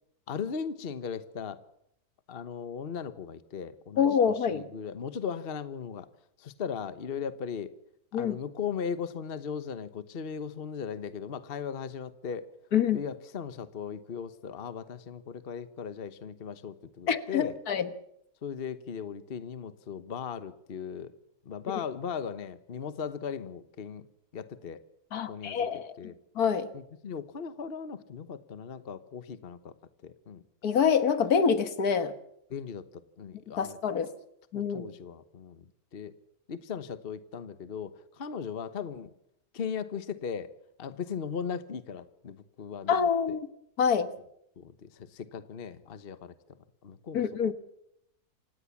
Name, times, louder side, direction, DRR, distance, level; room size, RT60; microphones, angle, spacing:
voice 1, 0.3-1.6 2.3-4.1 4.5-6.1 6.4-7.7 8.1-12.5 12.9-17.6 18.4-21.1 21.4-24.0 24.3-24.8 25.3-25.7 26.0-26.2 26.7-29.7 30.0-30.4 32.5-32.8 33.2-33.8 34.5-35.6 35.9-36.1 36.5-39.1 39.5-40.5 40.8-43.4 44.6-46.3 46.8-47.5, left 6 dB, 40° left, 13 dB, 1.2 m, -38 dB
voice 2, 4.0-4.6 8.1-8.4 12.7-13.0 17.1-17.9 25.1-25.9 26.4-26.7 30.6-32.1 33.6-34.1 34.5-34.9 42.9-43.5 43.8-44.1 47.1-47.5, left 7 dB, 70° left, 12 dB, 1.9 m, -26 dB
27.5 x 17.0 x 7.2 m, 0.75 s
omnidirectional pair, 1.6 m